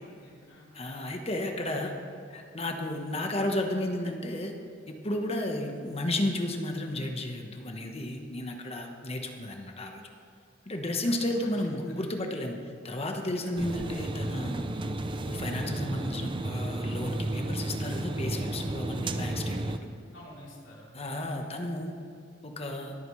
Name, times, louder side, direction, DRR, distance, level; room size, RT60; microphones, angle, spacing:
voice 1, 0.0-0.7 11.0-11.8 13.4-13.6 20.1-20.9, left 1 dB, 65° left, -5 dB, 3.4 m, -50 dB
voice 2, 0.7-1.9 2.3-4.5 4.9-10.1 10.6-12.6 12.8-14.7 15.3-19.8 20.9-21.9 22.4-23.0, left 1 dB, 30° left, 3 dB, 1.2 m, -33 dB
sound 1, 13.6-19.8, right 2 dB, 25° right, 0.5 m, -33 dB
22.0 x 9.0 x 3.2 m, 2.4 s
head